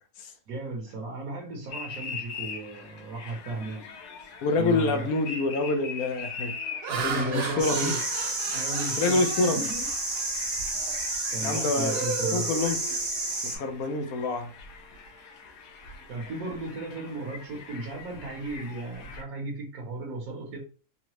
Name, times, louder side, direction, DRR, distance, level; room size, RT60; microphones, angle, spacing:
voice 1, 0.5-3.8 4.6-5.1 6.9-8.0 8.5-9.9 11.3-12.5 16.1-20.6, right 2 dB, 65° right, -3 dB, 1.3 m, -35 dB
sound 1, 1.7-19.2, left 5 dB, 90° left, 1.2 m, -43 dB
voice 2, 4.4-6.5 7.0-7.9 9.0-9.6 11.2-12.0 12.3-12.8 13.4-14.5, left 3 dB, 75° left, 6 dB, 1.0 m, -27 dB
Laughter, 4.7-5.0 5.6-5.9 6.5-10.3 10.7-11.0 11.4-13.3, right 5 dB, 90° right, 1.3 m, -36 dB
sound 2, 7.6-13.6, right 2 dB, 35° right, 0.6 m, -30 dB
3.8 x 2.0 x 3.0 m, 0.38 s
omnidirectional pair, 1.7 m